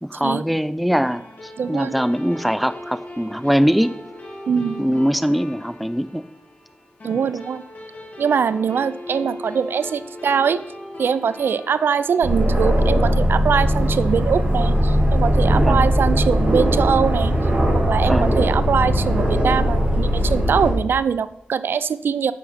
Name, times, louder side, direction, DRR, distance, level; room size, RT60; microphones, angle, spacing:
voice 1, 0.0-3.9 4.8-6.3 15.6-15.9 18.0-18.4, equal, ahead, 13 dB, 0.4 m, -22 dB
sound 1, 1.0-13.7, left 1 dB, 50° left, 3.3 m, -39 dB
voice 2, 1.6-1.9 4.5-5.0 7.0-7.6 8.2-10.6 11.0-17.3 17.7-22.3, right 6 dB, 90° right, 15 dB, 0.4 m, -22 dB
Aircraft, 12.2-20.7, equal, 50° right, 3.0 m, -19 dB
9.4 x 6.6 x 5.6 m, 0.83 s
wide cardioid pair, 145°, 4 cm